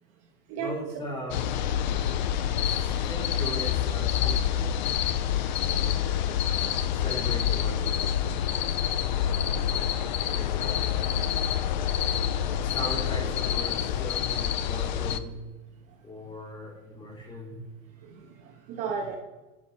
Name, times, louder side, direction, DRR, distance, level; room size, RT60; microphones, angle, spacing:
voice 1, 0.6-1.6 2.7-5.1 6.0-8.7 10.3-10.8 12.6-15.4 16.0-17.6, left 1 dB, 10° left, -1 dB, 3.6 m, -39 dB
sound 1, 1.3-15.2, left 9 dB, 30° left, 0.4 m, -27 dB
voice 2, 5.7-6.1 12.0-12.5 17.5-17.7 18.0-19.2, right 6 dB, 30° right, 1 dB, 1.4 m, -37 dB
28.5 x 11.5 x 4.4 m, 1.2 s
supercardioid pair, 160°, 50 cm